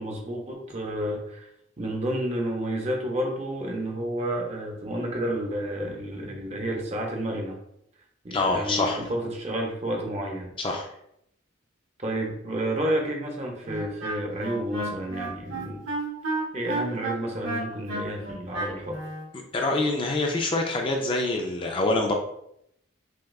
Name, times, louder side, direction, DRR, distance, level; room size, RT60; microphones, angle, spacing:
voice 1, 0.0-1.5 1.8-7.6 8.2-10.5 12.0-15.8 16.5-19.0, right 1 dB, 30° right, 1 dB, 0.6 m, -30 dB
voice 2, 8.3-9.0 10.6-10.9 19.5-22.1, left 2 dB, 25° left, 1 dB, 0.3 m, -25 dB
Wind instrument woodwind instrument, 13.6-19.3, right 2 dB, 70° right, 1.2 m, -32 dB
6.2 x 2.3 x 2.3 m, 0.75 s
head